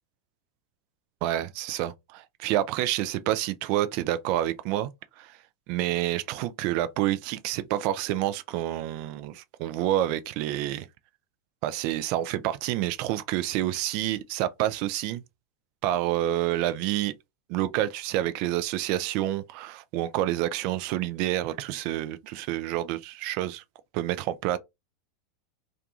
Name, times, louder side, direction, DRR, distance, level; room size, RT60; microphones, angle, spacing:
voice 1, 1.2-4.9 5.2-5.4 5.7-10.9 11.6-15.2 15.8-17.1 17.5-23.6 23.9-24.6, right 13 dB, 50° right, 0.3 m, -28 dB
2.5 x 2.2 x 2.7 m
figure-of-eight pair, 90°, 2 cm